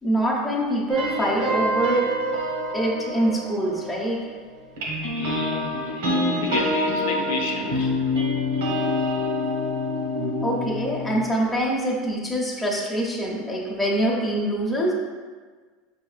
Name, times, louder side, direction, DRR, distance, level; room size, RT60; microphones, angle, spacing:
voice 1, 0.0-2.0 2.7-4.2 10.4-14.9, right 1 dB, 5° left, -5 dB, 0.8 m, -24 dB
sound 1, 0.9-4.3 4.8-11.2, left 1 dB, 85° right, 1.2 m, -26 dB
voice 2, 5.2-6.1 6.4-7.9, left 4 dB, 80° left, 1 dB, 0.7 m, -31 dB
5.7 x 3.5 x 2.4 m, 1.5 s
supercardioid pair, 150°, 0 cm